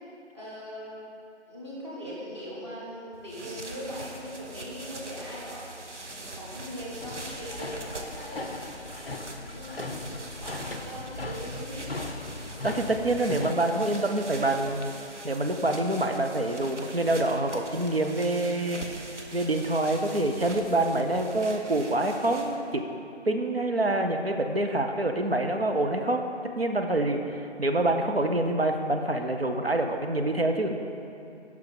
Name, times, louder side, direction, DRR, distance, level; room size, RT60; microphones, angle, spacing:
voice 1, 0.3-1.0 1.5-5.7 6.3-8.6 9.0-12.0, equal, 25° right, -6 dB, 1.6 m, -40 dB
sound 1, 3.1-22.7, right 2 dB, 90° right, 1.0 m, -43 dB
sound 2, 7.0-13.5, left 2 dB, 55° left, 0.5 m, -38 dB
voice 2, 12.6-14.9 15.2-18.8 19.3-22.8 23.3-26.2 26.5-30.8, right 2 dB, 60° right, 4 dB, 0.7 m, -26 dB
9.3 x 6.0 x 3.8 m, 2.7 s
figure-of-eight pair, 175°, 35 cm